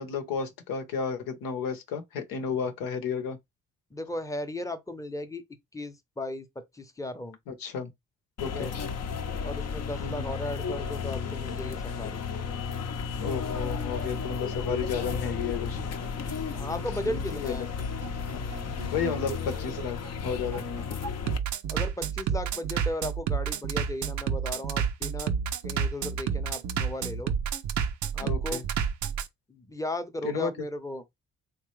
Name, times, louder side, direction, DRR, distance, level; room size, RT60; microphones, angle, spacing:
voice 1, 0.0-3.4 7.5-7.9 8.4-8.7 10.0-10.3 13.2-15.8 17.0-17.6 18.3-18.4 18.9-20.9 28.2-28.6 30.2-30.5, left 6 dB, 80° left, 0.8 m, -32 dB
voice 2, 3.9-5.4 5.7-6.5 6.7-7.4 8.4-8.7 9.4-12.2 16.5-17.7 21.7-25.3 25.6-27.3 28.1-28.6 29.5-31.0, left 1 dB, 10° left, 0.7 m, -36 dB
sound 1, 8.4-21.4, left 6 dB, 50° left, 0.6 m, -33 dB
Bass drum, 13.3-29.3, right 7 dB, 60° right, 0.5 m, -31 dB
3.1 x 2.2 x 3.1 m
supercardioid pair, 55°, 34 cm